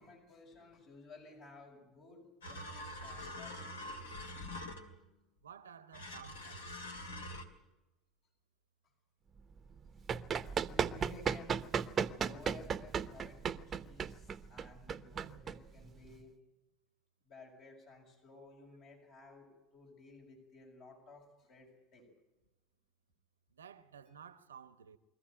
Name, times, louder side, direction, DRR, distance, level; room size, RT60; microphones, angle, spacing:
voice 1, 0.0-4.1 10.1-10.3 10.7-11.6 12.1-16.4 17.3-22.1, left 2 dB, 55° left, 6.1 m, -56 dB
sound 1, 2.4-5.1 5.9-7.5, left 1 dB, 80° left, 2.2 m, -45 dB
voice 2, 5.4-6.7 23.5-25.0, right 8 dB, 80° right, 1.0 m, -54 dB
Run, 9.7-16.2, right 7 dB, 35° right, 0.9 m, -36 dB
23.5 x 14.5 x 9.0 m
figure-of-eight pair, 70°, 0 cm